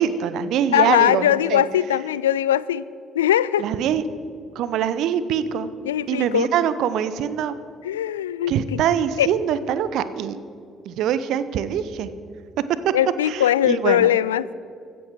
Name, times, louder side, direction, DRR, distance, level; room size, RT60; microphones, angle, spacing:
voice 1, 0.0-1.6 3.6-4.0 4.5-5.7 6.1-7.6 8.5-10.4 10.9-12.1 12.8-12.9 13.2-14.1, right 9 dB, 55° right, 14 dB, 0.7 m, -23 dB
voice 2, 0.7-2.9 3.2-3.6 5.8-6.5 7.8-8.5 9.2-9.3 12.9-14.5, left 11 dB, 75° left, 19 dB, 0.3 m, -20 dB
16.0 x 13.5 x 4.7 m, 2.4 s
figure-of-eight pair, 45°, 0 cm